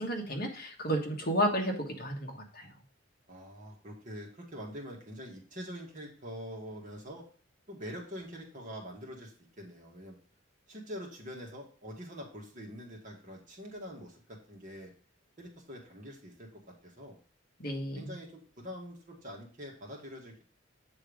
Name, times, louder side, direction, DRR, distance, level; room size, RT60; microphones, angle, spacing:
voice 1, 0.0-2.7 17.6-18.1, equal, 50° left, 0 dB, 1.5 m, -32 dB
voice 2, 3.3-7.2 7.7-10.2 10.7-14.9 15.4-17.2 17.9-20.4, equal, 40° right, -1 dB, 1.8 m, -45 dB
8.1 x 3.7 x 4.9 m, 0.41 s
head